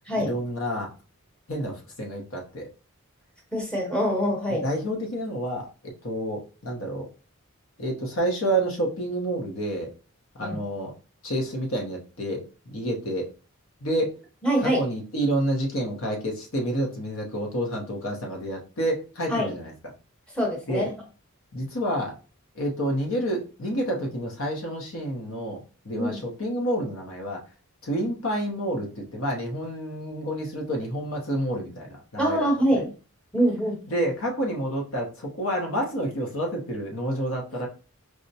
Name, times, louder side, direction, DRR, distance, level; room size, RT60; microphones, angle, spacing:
voice 1, 0.1-0.9 1.5-2.7 4.5-7.1 7.8-9.9 10.4-10.9 11.2-13.3 13.8-14.2 14.6-19.7 20.7-20.9 21.5-22.1 22.5-27.4 27.8-32.5 32.7-32.8 33.9-37.7, right 1 dB, 60° left, 1 dB, 0.8 m, -29 dB
voice 2, 3.5-4.6 10.4-10.6 14.4-14.8 19.3-19.5 20.3-20.9 25.9-26.2 32.2-32.9 33.3-33.8, equal, 5° left, -2 dB, 0.9 m, -24 dB
4.8 x 2.1 x 2.7 m, 0.35 s
head